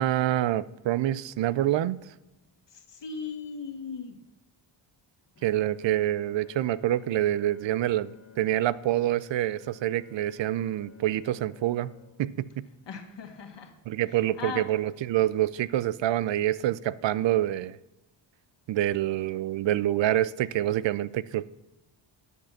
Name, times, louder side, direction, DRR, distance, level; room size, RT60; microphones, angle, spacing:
voice 1, 0.0-2.0 5.4-8.1 8.4-11.9 12.2-12.6 13.9-17.8 18.7-21.5, right 13 dB, 65° right, 19 dB, 0.6 m, -26 dB
voice 2, 2.7-4.2 12.9-13.7 14.4-14.7, left 6 dB, 60° left, 5 dB, 1.8 m, -38 dB
Bowed string instrument, 5.3-13.6, left 6 dB, 30° left, 1.6 m, -54 dB
10.0 x 6.7 x 5.8 m, 1.0 s
cardioid pair, 75°, 49 cm